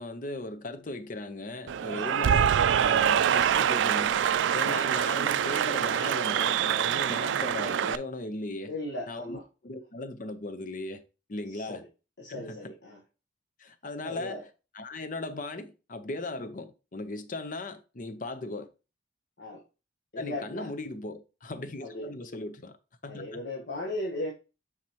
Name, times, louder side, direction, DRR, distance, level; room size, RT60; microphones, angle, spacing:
voice 1, 0.0-4.2 4.5-8.7 9.1-11.0 11.3-11.8 12.3-12.7 13.6-14.4 14.7-18.7 20.2-22.8 23.0-23.4, left 2 dB, 45° left, 0.7 m, -38 dB
Cheering / Applause, 1.7-8.0, right 9 dB, 80° right, 0.3 m, -25 dB
voice 2, 8.7-9.4 11.5-11.9 12.2-13.0 14.0-14.4 19.4-19.6 20.1-20.7 21.8-22.1 23.0-24.3, left 1 dB, 70° left, 1.2 m, -37 dB
7.5 x 4.9 x 2.9 m
head